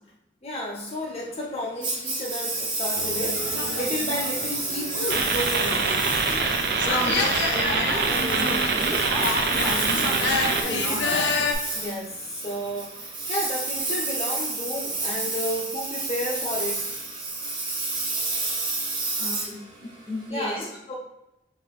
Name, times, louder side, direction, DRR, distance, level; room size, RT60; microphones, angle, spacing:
voice 1, 0.4-5.9 11.7-16.8 20.3-20.9, equal, 35° left, -2 dB, 0.5 m, -32 dB
Engine, 1.8-20.3, right 3 dB, 25° right, 0.7 m, -30 dB
sound 1, 3.0-11.5, left 4 dB, 85° left, 0.5 m, -29 dB
sound 2, 5.1-10.6, right 4 dB, 60° right, 0.4 m, -25 dB
voice 2, 6.9-7.2 7.5-11.1 19.2-19.6 20.1-20.6, equal, 10° right, -5 dB, 1.1 m, -33 dB
5.0 x 2.6 x 3.0 m, 0.92 s
head